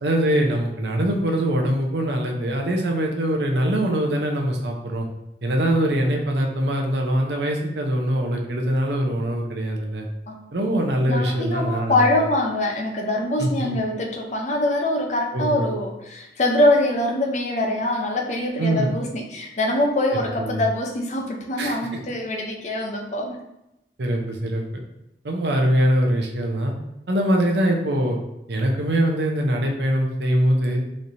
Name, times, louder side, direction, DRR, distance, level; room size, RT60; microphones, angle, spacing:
voice 1, 0.0-5.1 5.4-10.1 10.5-12.0 13.4-13.7 15.3-15.7 18.6-18.9 20.1-20.6 21.6-21.8 24.0-24.8 25.2-26.7 27.1-28.2 28.5-30.8, right 1 dB, 75° right, 1 dB, 0.6 m, -23 dB
voice 2, 11.1-23.4, left 1 dB, 40° left, 2 dB, 0.5 m, -23 dB
4.1 x 3.2 x 2.6 m, 0.87 s
head